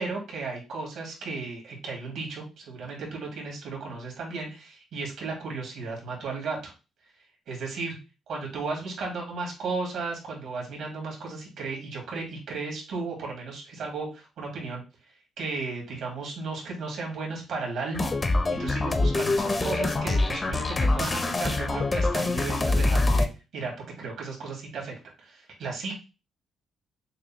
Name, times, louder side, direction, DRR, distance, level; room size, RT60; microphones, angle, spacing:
voice 1, 0.0-6.7 7.5-8.0 8.3-14.8 15.4-23.3 23.5-25.0 25.2-26.0, right 4 dB, 75° right, -1 dB, 2.1 m, -35 dB
sound 1, 17.9-23.3, left 2 dB, 30° left, 0.7 m, -25 dB
6.5 x 2.3 x 2.9 m, 0.30 s
cardioid pair, 90°, 0 cm